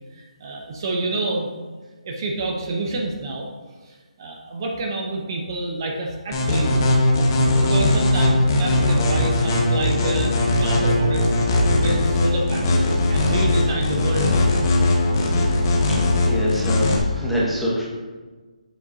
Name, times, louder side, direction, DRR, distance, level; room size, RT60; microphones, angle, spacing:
voice 1, 0.1-1.5 2.0-3.5 3.9-6.9 7.6-11.3 11.8-14.7, right 2 dB, 35° right, 1 dB, 0.8 m, -28 dB
sound 1, 6.3-17.0, left 2 dB, 25° left, 1.0 m, -19 dB
voice 2, 15.6-16.0 16.2-17.8, equal, ahead, -8 dB, 1.1 m, -25 dB
7.9 x 7.7 x 2.7 m, 1.3 s
hypercardioid pair, 170°, 4 cm